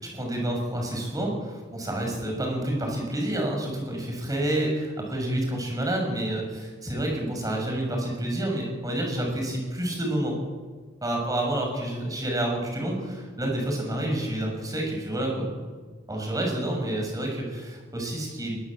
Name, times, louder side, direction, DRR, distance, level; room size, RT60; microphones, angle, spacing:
voice 1, 0.0-10.4 11.0-15.5 16.1-18.6, right 1 dB, 15° right, 1 dB, 6.9 m, -29 dB
21.5 x 19.5 x 7.9 m, 1.4 s
head